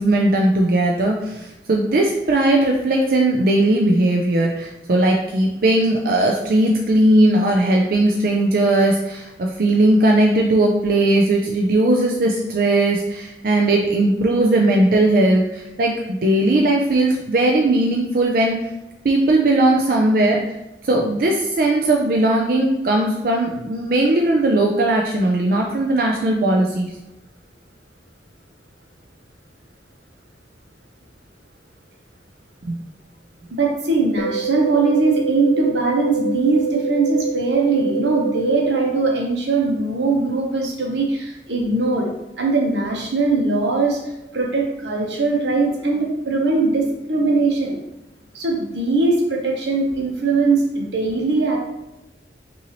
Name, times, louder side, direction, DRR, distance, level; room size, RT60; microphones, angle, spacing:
voice 1, 0.0-18.6 19.0-20.4 20.8-26.9 32.7-32.8, right 1 dB, 55° right, 0 dB, 0.4 m, -18 dB
voice 2, 33.6-42.1 42.4-47.8 48.3-51.6, right 3 dB, 80° right, 0 dB, 0.9 m, -20 dB
sound 1, 34.2-39.2, right 5 dB, 75° left, 0.4 m, -26 dB
5.5 x 2.7 x 3.0 m, 0.95 s
head